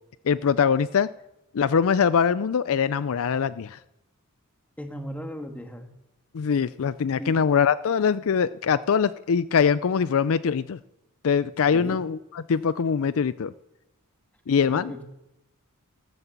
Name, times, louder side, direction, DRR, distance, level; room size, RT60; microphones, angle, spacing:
voice 1, 0.3-1.1 1.5-3.8 6.3-10.8 11.2-12.2 12.5-13.5 14.5-15.0, left 6 dB, 65° left, 16 dB, 0.4 m, -23 dB
voice 2, 4.8-5.9 7.2-7.3 11.7-12.0 14.7-15.0, equal, 5° left, 5 dB, 1.8 m, -36 dB
14.0 x 14.0 x 7.3 m, 0.90 s
head